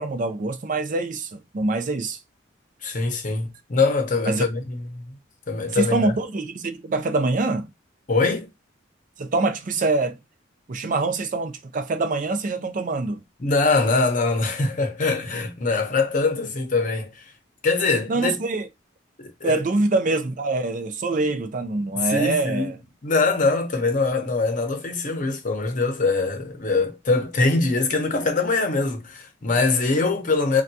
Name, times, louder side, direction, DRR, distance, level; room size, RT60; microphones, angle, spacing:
voice 1, 0.0-2.2 4.3-4.4 5.7-7.7 9.2-10.2 10.7-13.2 18.1-18.7 19.4-22.8, right 3 dB, 45° right, 0.4 m, -24 dB
voice 2, 2.8-5.1 5.5-6.1 8.1-8.5 13.4-17.1 17.6-18.4 19.2-19.6 21.9-22.7 23.0-30.6, left 3 dB, 45° left, 0.8 m, -23 dB
3.5 x 2.3 x 2.7 m
head